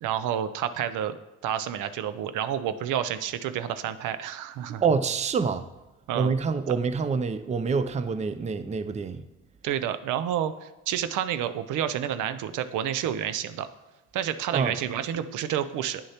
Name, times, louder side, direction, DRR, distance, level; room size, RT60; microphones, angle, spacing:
voice 1, 0.0-1.2 1.4-4.8 6.1-6.3 9.6-13.7 14.1-16.0, right 10 dB, 85° right, 0.5 m, -29 dB
voice 2, 4.8-5.6 6.1-9.2 14.5-14.8, right 5 dB, 25° right, 0.4 m, -26 dB
9.6 x 6.4 x 2.8 m
cardioid pair, 90°, 30 cm